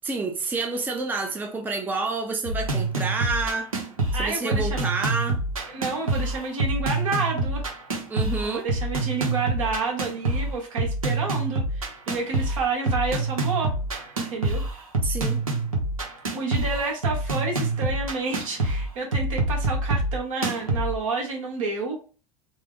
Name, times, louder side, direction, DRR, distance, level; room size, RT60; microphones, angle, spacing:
voice 1, 0.0-3.7 4.1-5.4 8.1-8.7 15.0-15.4, right 3 dB, 10° right, 0.5 m, -28 dB
sound 1, 2.4-21.0, right 2 dB, 85° right, 0.8 m, -26 dB
voice 2, 4.1-4.9 5.7-7.6 8.4-13.7 14.2-14.6 16.3-22.1, right 4 dB, 70° right, 1.2 m, -29 dB
2.9 x 2.0 x 3.4 m
figure-of-eight pair, 75°, 18 cm